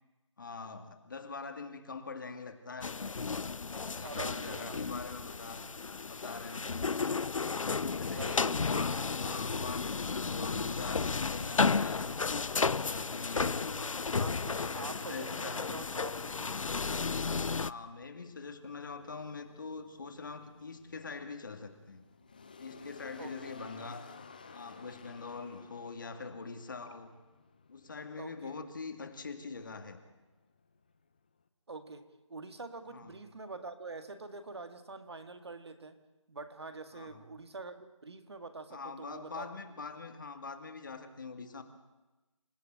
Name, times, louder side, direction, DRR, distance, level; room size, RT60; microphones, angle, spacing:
voice 1, 0.4-3.1 3.8-5.7 6.0-6.7 7.8-13.8 14.4-15.7 17.5-22.1 22.6-24.0 24.5-27.1 27.7-30.0 32.9-33.1 36.9-37.2 38.7-41.6, left 4 dB, 40° left, 7 dB, 2.3 m, -44 dB
sound 1, 2.8-17.7, left 4 dB, 85° left, 0.7 m, -33 dB
voice 2, 4.0-4.8 8.1-8.7 14.1-16.6 23.2-23.6 28.2-28.5 31.7-36.0 36.3-39.5, right 3 dB, 55° right, 9 dB, 2.0 m, -45 dB
sound 2, 17.8-31.5, left 4 dB, 15° left, 0.7 m, -55 dB
27.5 x 16.5 x 8.9 m, 1.1 s
figure-of-eight pair, 175°, 16 cm